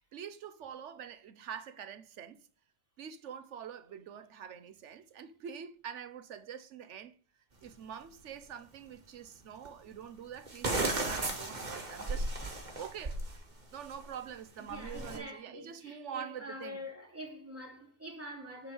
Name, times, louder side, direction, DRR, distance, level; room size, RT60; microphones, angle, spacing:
voice 1, 0.1-2.4 3.0-7.1 7.6-13.2 13.7-16.8, right 8 dB, 90° right, 1.2 m, -45 dB
sound 1, 7.7-7.8 9.6-9.7 10.5-13.4 13.7-14.0 14.7-15.2, right 2 dB, 40° right, 1.7 m, -35 dB
voice 2, 14.6-18.7, equal, 10° right, 3.3 m, -45 dB
9.2 x 4.6 x 6.3 m
omnidirectional pair, 1.2 m